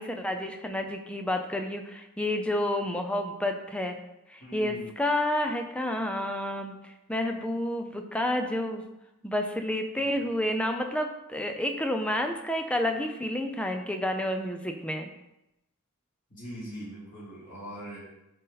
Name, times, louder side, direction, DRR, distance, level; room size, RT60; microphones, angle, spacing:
voice 1, 0.0-4.0 4.3-8.8 9.2-15.1, left 1 dB, 5° left, 4 dB, 0.6 m, -30 dB
voice 2, 4.4-4.9 10.0-10.1 16.3-18.0, right 1 dB, 40° left, -8 dB, 3.1 m, -41 dB
11.5 x 4.0 x 4.1 m, 0.90 s
head